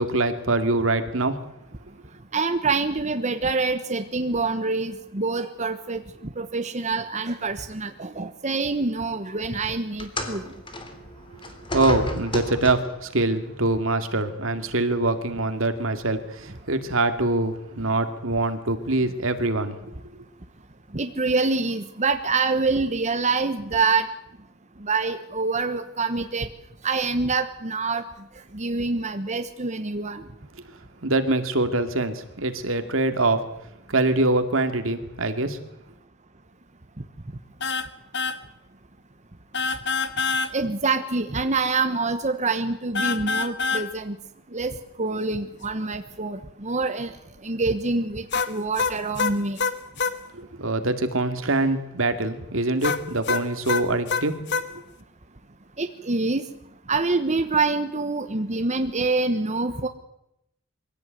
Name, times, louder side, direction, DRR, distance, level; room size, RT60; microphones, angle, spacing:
voice 1, 0.0-1.4 11.7-19.8 31.0-33.4 33.9-35.6 50.3-54.8, right 2 dB, 70° right, 8 dB, 2.4 m, -24 dB
voice 2, 2.3-6.0 6.4-10.5 20.9-24.1 24.8-26.5 26.8-28.0 28.5-30.2 40.5-44.2 44.5-47.1 47.4-49.6 55.8-56.4 56.9-59.9, right 3 dB, 35° right, 8 dB, 1.2 m, -26 dB
sound 1, 10.0-13.0 14.0-14.2 15.1-15.2, left 1 dB, 25° left, 3.3 m, -33 dB
sound 2, 37.6-37.9 38.1-38.4 39.5-40.5 43.0-43.9 48.3-50.2 52.8-54.7, left 4 dB, 55° left, 1.6 m, -25 dB
23.5 x 16.5 x 9.3 m, 0.83 s
head